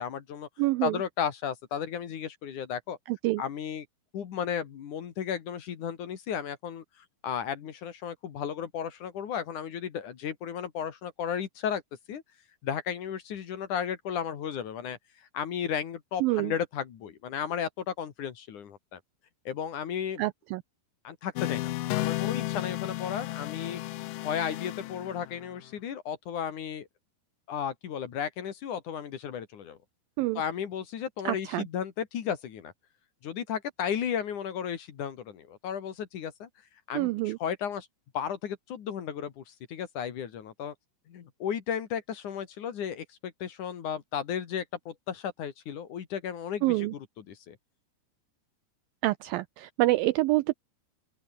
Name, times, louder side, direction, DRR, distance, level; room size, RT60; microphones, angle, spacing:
voice 1, 0.0-0.5 0.8-3.0 3.4-3.9 4.1-11.8 12.1-12.2 12.6-19.0 19.4-20.2 21.0-23.8 24.2-26.9 27.5-29.8 30.3-32.7 33.2-36.5 36.9-37.9 38.1-40.7 41.1-47.6, left 8 dB, 55° left, 3.0 m, -34 dB
voice 2, 0.6-1.0 3.1-3.4 16.2-16.5 20.2-20.6 30.2-30.4 31.3-31.7 37.0-37.4 46.6-46.9 49.0-50.5, right 19 dB, 90° right, 2.0 m, -27 dB
sound 1, 21.4-25.6, left 17 dB, 85° left, 1.9 m, -33 dB
open air
omnidirectional pair, 4.7 m